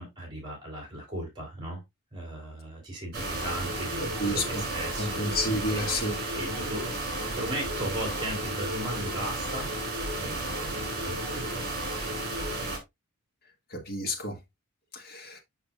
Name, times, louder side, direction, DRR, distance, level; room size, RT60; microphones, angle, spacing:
voice 1, 0.0-1.8 2.1-6.9 7.2-9.7 10.1-12.5, right 1 dB, 20° right, 3.3 m, -37 dB
sound 1, 3.1-12.8, right 1 dB, 50° right, 2.8 m, -33 dB
voice 2, 4.2-4.6 5.0-6.2 13.7-14.4 14.9-15.4, left 1 dB, 45° left, 1.7 m, -30 dB
7.1 x 5.8 x 2.4 m
head